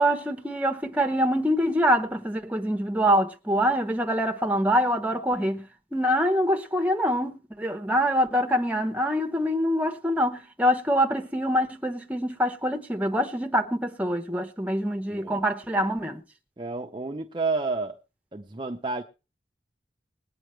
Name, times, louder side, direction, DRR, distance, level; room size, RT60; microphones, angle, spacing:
voice 1, 0.0-5.7 5.9-16.2, equal, 10° right, 1.0 m, -25 dB
voice 2, 15.1-15.4 16.6-18.0 18.3-19.0, right 3 dB, 25° right, 0.6 m, -30 dB
20.5 x 9.0 x 3.2 m
head